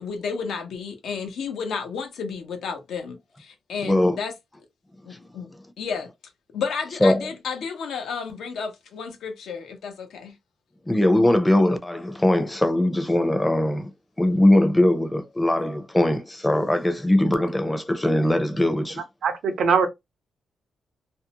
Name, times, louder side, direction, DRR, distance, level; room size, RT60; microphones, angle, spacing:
voice 1, 0.0-4.3 5.1-5.5 5.8-6.1 6.5-10.4, left 5 dB, 85° left, 0.8 m, -32 dB
voice 2, 3.8-4.2 7.0-7.3 10.9-13.9 14.2-19.0, left 1 dB, 15° left, 0.6 m, -20 dB
voice 3, 19.2-19.9, right 5 dB, 80° right, 0.7 m, -21 dB
2.6 x 2.1 x 2.8 m
cardioid pair, 80°, 0 cm